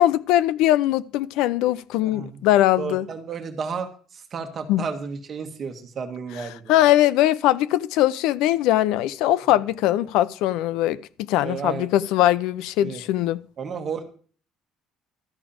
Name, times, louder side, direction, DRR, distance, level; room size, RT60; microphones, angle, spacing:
voice 1, 0.0-3.1 4.7-4.8 6.7-11.0 11.3-13.4, left 14 dB, 85° left, 0.5 m, -21 dB
voice 2, 2.0-2.4 2.8-6.8 11.4-11.9 12.8-13.0 13.6-14.0, right 5 dB, 30° right, 1.7 m, -32 dB
13.0 x 5.0 x 8.7 m
cardioid pair, 165°, 0 cm